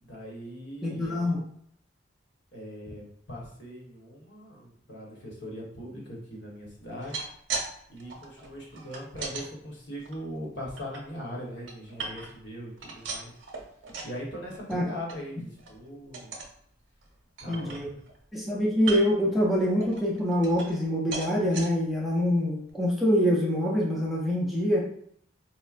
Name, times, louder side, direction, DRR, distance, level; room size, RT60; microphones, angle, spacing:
voice 1, 0.0-1.3 2.5-7.3 7.9-13.3 14.0-16.3 17.4-17.8, equal, 65° left, -3 dB, 1.1 m, -40 dB
voice 2, 0.8-1.4 14.7-14.9 17.5-17.9 18.3-24.9, equal, ahead, -4 dB, 0.5 m, -25 dB
sound 1, 6.8-7.7 8.0-9.5 10.0-11.0 11.4-12.5 12.8-14.2 14.5-14.8 15.1-15.2 15.6-15.8 16.1-16.5 17.0-17.1 17.4-18.2 18.8-19.3 19.8-20.9 21.1-21.7 22.3-22.4 22.7-22.8, right 4 dB, 85° right, 0.7 m, -38 dB
4.4 x 2.1 x 2.4 m, 0.65 s
head